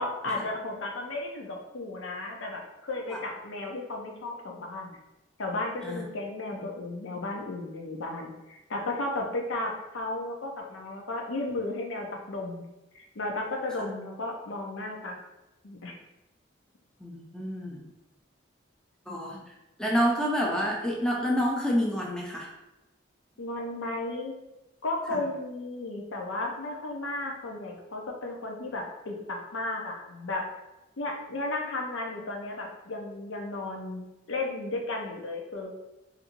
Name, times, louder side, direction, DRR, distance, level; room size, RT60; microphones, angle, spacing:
voice 1, 0.0-5.0 5.4-12.6 12.9-15.2 15.6-15.9 23.4-24.3 24.8-30.4 31.0-35.7, left 2 dB, 85° left, 1 dB, 0.6 m, -34 dB
voice 2, 17.0-17.8 19.1-19.4 19.8-22.5 25.1-25.2, equal, 5° left, -3 dB, 0.5 m, -28 dB
4.3 x 2.6 x 2.6 m, 0.98 s
head